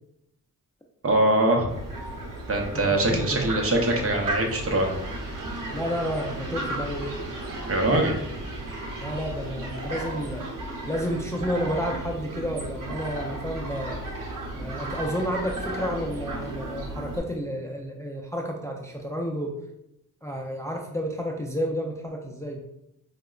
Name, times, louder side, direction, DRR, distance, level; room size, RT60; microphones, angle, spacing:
voice 1, 1.0-1.7 2.5-5.0 7.7-8.1, right 1 dB, 45° right, 1 dB, 0.7 m, -23 dB
Fowl, 1.7-17.2, right 2 dB, 85° right, 0.8 m, -34 dB
voice 2, 2.7-3.5 5.7-7.2 9.0-10.5 10.9-14.0 14.6-19.6 20.2-22.6, equal, 10° left, 1 dB, 0.4 m, -31 dB
4.6 x 2.1 x 2.3 m, 0.82 s
cardioid pair, 65°, 32 cm